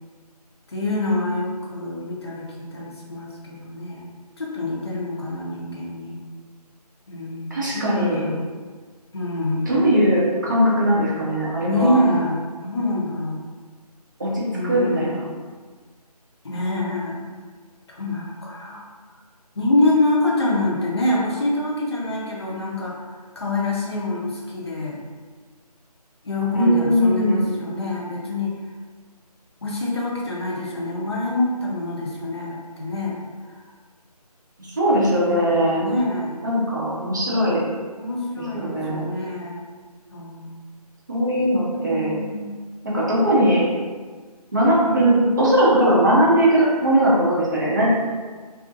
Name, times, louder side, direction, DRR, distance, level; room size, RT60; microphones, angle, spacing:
voice 1, 0.7-4.1 4.4-6.2 7.1-8.4 9.1-9.9 11.6-13.5 14.5-15.2 16.4-17.2 17.9-18.9 19.6-23.1 23.4-25.0 26.2-28.6 29.6-33.6 34.9-36.3 38.0-39.6 40.1-40.6 41.7-42.5 44.8-45.3, left 2 dB, 40° left, -4 dB, 0.5 m, -26 dB
voice 2, 7.5-8.2 9.7-12.0 14.2-15.2 26.5-27.5 34.8-35.8 36.4-37.7 38.5-39.1 41.1-42.1 42.8-43.7 44.5-47.9, right 1 dB, 30° right, -7 dB, 0.5 m, -19 dB
2.4 x 2.4 x 2.5 m, 1.5 s
figure-of-eight pair, 170°, 21 cm